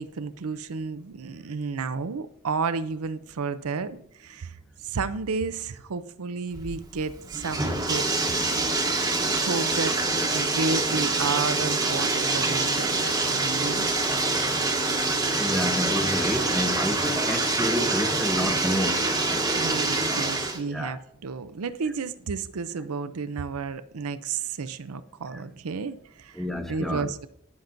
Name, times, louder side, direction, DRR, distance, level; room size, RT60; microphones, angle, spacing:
voice 1, 0.0-4.6 4.8-8.5 8.8-9.1 9.4-10.0 10.3-13.9 19.6-27.3, right 4 dB, 75° right, 0.5 m, -32 dB
Bathtub (filling or washing), 6.6-20.6, right 3 dB, 15° right, 1.1 m, -25 dB
voice 2, 15.4-19.1 20.6-21.0 25.3-25.4 26.4-27.1, equal, ahead, 0.7 m, -29 dB
15.0 x 5.9 x 2.6 m
head